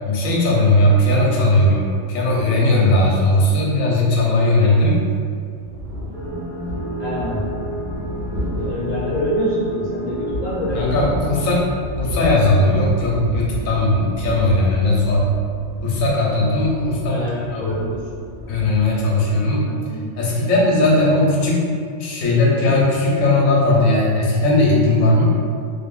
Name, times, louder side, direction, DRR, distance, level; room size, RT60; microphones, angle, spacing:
voice 1, 0.0-5.0 10.7-11.7 12.0-15.3 15.8-17.8 18.5-19.7 20.2-21.7 22.0-25.2, left 1 dB, 85° left, -4 dB, 1.0 m, -17 dB
sound 1, 5.5-18.9, left 1 dB, 75° right, 1.1 m, -31 dB
sound 2, 6.1-11.2, right 1 dB, 60° right, 0.5 m, -29 dB
voice 2, 7.0-7.4 8.5-11.0 11.3-11.4 17.1-18.0 19.7-20.2, equal, 50° left, -10 dB, 0.5 m, -26 dB
2.7 x 2.6 x 2.3 m, 2.2 s
omnidirectional pair, 1.4 m